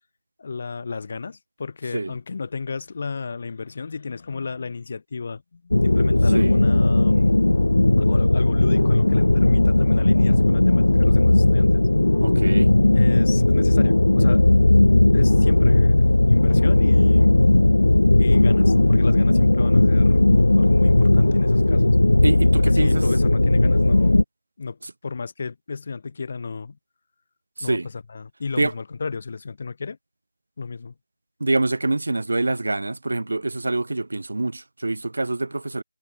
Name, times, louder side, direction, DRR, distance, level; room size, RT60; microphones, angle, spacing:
voice 1, 0.4-7.3 8.0-11.8 12.9-14.5 15.1-17.3 18.2-22.0 22.5-24.2 24.6-26.8 27.6-30.0 30.6-30.9, left 4 dB, 45° left, 1.2 m, -33 dB
sound 1, 5.7-24.2, left 2 dB, 85° left, 0.4 m, -17 dB
voice 2, 12.2-12.7 22.2-23.0 27.6-27.9 28.6-28.7 31.4-35.8, right 2 dB, 75° right, 0.8 m, -25 dB
figure-of-eight pair, 165°, 0 cm